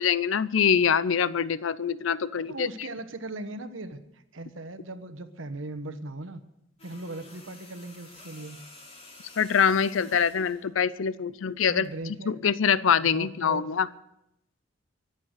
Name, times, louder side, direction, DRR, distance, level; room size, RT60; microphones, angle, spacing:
voice 1, 0.0-2.7 9.4-11.9 12.3-13.9, left 7 dB, 75° left, 17 dB, 0.5 m, -24 dB
voice 2, 2.5-6.4 6.8-8.6 11.7-12.4 13.0-13.7, right 2 dB, 75° right, 9 dB, 1.3 m, -38 dB
sound 1, 6.8-10.7 11.8-12.0, left 2 dB, 30° left, 3.7 m, -50 dB
23.0 x 8.3 x 6.6 m, 0.83 s
head